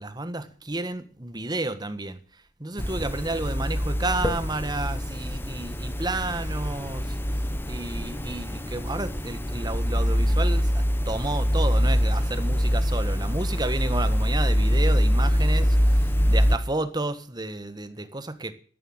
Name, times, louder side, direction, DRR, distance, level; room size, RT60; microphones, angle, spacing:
voice 1, 0.0-2.2 2.6-7.2 7.6-18.5, right 2 dB, 25° right, 1.5 m, -31 dB
sound 1, 2.8-16.6, equal, 15° left, 1.3 m, -24 dB
13.0 x 11.0 x 8.0 m
head